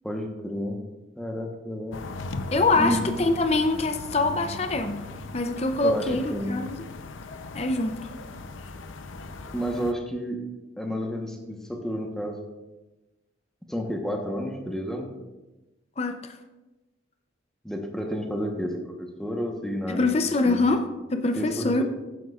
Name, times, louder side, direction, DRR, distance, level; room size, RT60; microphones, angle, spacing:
voice 1, 0.0-0.8 1.2-2.0 2.7-3.1 5.8-6.6 9.5-10.4 10.8-12.4 13.7-15.1 17.6-20.1 20.4-20.7 21.3-21.8, equal, 5° left, 1 dB, 1.0 m, -30 dB
sound 1, 1.9-9.9, left 3 dB, 90° left, 0.6 m, -38 dB
voice 2, 2.5-5.1 5.3-6.7 7.5-8.1 16.0-16.3 19.9-20.8 21.1-21.8, left 2 dB, 35° left, 7 dB, 0.6 m, -24 dB
15.0 x 9.3 x 2.4 m, 1.1 s
head